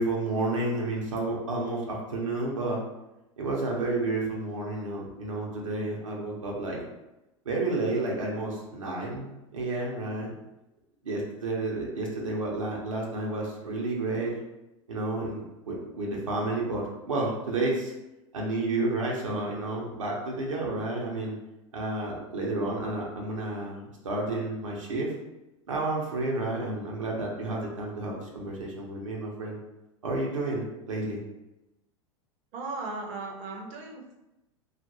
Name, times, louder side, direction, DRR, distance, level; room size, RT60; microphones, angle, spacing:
voice 1, 0.0-2.8 3.4-6.8 7.5-10.3 11.0-14.4 14.9-17.9 18.3-21.4 21.7-25.1 25.7-29.6 30.0-31.2, right 2 dB, 85° right, -2 dB, 0.6 m, -31 dB
voice 2, 32.5-34.1, right 3 dB, 45° right, 0 dB, 0.6 m, -37 dB
2.3 x 2.1 x 2.9 m, 0.96 s
hypercardioid pair, 90°, 16 cm